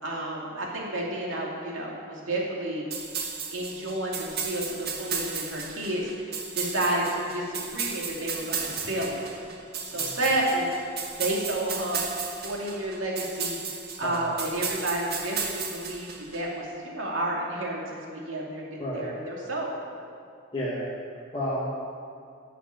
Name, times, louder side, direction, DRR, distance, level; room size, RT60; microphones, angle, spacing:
voice 1, 0.0-2.9 3.5-9.3 9.8-10.7 11.2-12.0 12.4-19.8, right 1 dB, 70° right, -3 dB, 2.5 m, -31 dB
sound 1, 2.9-16.4, right 6 dB, 55° right, 1.4 m, -34 dB
voice 2, 21.3-21.7, equal, 25° left, -9 dB, 1.8 m, -31 dB
11.5 x 5.9 x 8.8 m, 2.3 s
head